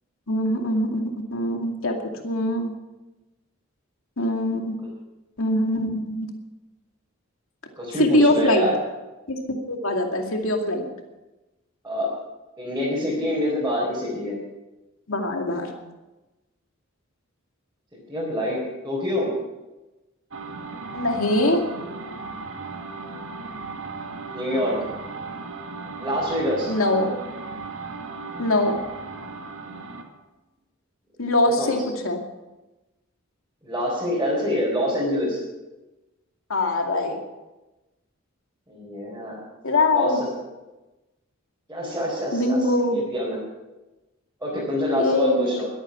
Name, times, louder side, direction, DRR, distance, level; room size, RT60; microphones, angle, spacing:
voice 1, 0.3-2.0 2.2-2.7 4.2-4.7 5.4-6.3 8.0-8.7 9.3-10.9 15.1-15.7 20.9-21.6 26.7-27.1 28.4-28.8 31.2-32.2 36.5-37.2 39.6-40.2 42.3-43.0 45.0-45.7, left 1 dB, 80° left, 3 dB, 2.4 m, -22 dB
voice 2, 7.8-8.8 11.8-12.2 12.6-14.4 17.9-19.3 24.3-24.9 26.0-26.7 31.4-31.7 33.6-35.4 38.7-39.4 39.9-40.4 41.7-42.6 42.9-43.4 44.4-45.7, equal, 15° right, -7 dB, 4.4 m, -26 dB
sound 1, 20.3-30.1, right 3 dB, 75° right, 1.7 m, -36 dB
21.0 x 8.9 x 5.9 m, 1.1 s
head